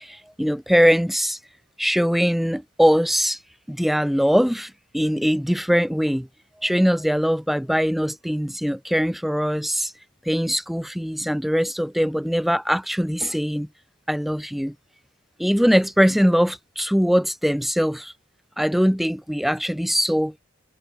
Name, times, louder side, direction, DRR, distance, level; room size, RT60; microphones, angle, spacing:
voice 1, 0.0-1.4 1.8-3.4 3.7-6.3 6.6-9.9 10.3-13.7 14.1-14.7 15.4-18.1 18.6-20.3, equal, ahead, 0.6 m, -21 dB
head